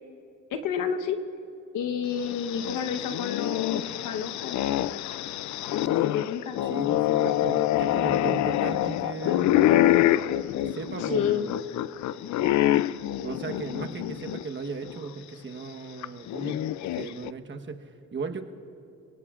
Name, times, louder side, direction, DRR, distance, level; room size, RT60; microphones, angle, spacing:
voice 1, 0.5-1.2 1.7-4.6 5.7-6.6 11.0-11.5, left 8 dB, 90° left, 6 dB, 1.1 m, -30 dB
sound 1, 2.2-14.4 14.9-15.0 16.0-17.3, left 13 dB, 70° left, 0.5 m, -26 dB
voice 2, 6.6-9.6 10.6-11.5 13.2-18.4, right 4 dB, 40° right, 5 dB, 1.2 m, -36 dB
29.0 x 18.5 x 2.5 m, 2.8 s
cardioid pair, 90°, 30 cm